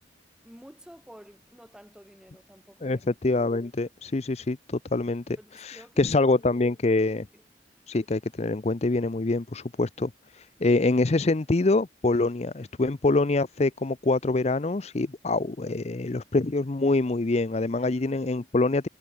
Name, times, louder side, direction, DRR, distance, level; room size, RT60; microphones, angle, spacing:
voice 1, 0.4-3.0 5.4-6.1 7.3-7.4 17.7-18.1, equal, 5° right, 3.8 m, -50 dB
voice 2, 2.8-7.3 7.9-18.9, left 2 dB, 40° left, 0.6 m, -25 dB
head